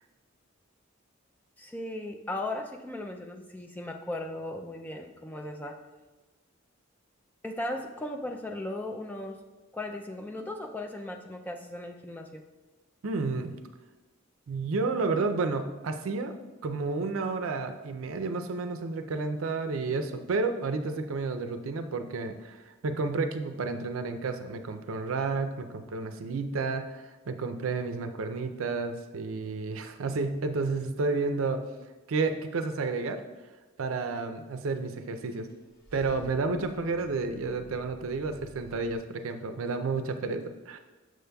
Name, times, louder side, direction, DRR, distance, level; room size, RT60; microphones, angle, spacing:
voice 1, 1.6-5.8 7.4-9.4 9.7-12.4, left 1 dB, 10° left, 3 dB, 0.3 m, -37 dB
voice 2, 13.0-13.6 14.5-16.3 16.6-22.6 22.8-31.6 32.1-33.2 33.8-35.5 35.9-40.8, right 3 dB, 85° right, 7 dB, 0.5 m, -31 dB
Car / Engine starting / Idling, 35.5-39.0, equal, 50° left, 1.1 m, -52 dB
6.6 x 6.3 x 2.3 m, 1.2 s
head